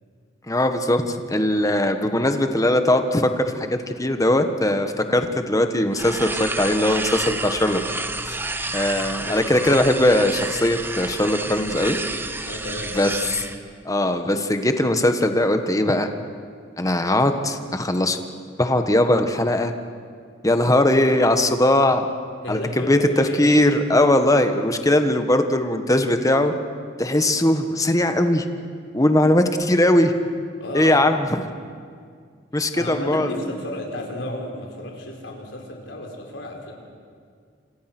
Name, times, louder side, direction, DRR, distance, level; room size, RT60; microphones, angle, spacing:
voice 1, 0.5-7.8 8.7-12.0 13.0-13.1 13.8-16.1 16.8-18.2 18.6-19.7 20.4-22.1 22.5-26.5 27.0-28.4 28.9-30.1 30.7-31.3 32.5-33.3, left 1 dB, 20° left, 7 dB, 1.4 m, -20 dB
sound 1, 5.9-13.6, right 2 dB, 10° right, 1.1 m, -30 dB
voice 2, 12.4-13.0 22.4-23.5 30.6-31.1 32.5-36.7, left 1 dB, 75° left, 1 dB, 4.9 m, -32 dB
29.5 x 26.5 x 6.2 m, 2.1 s
head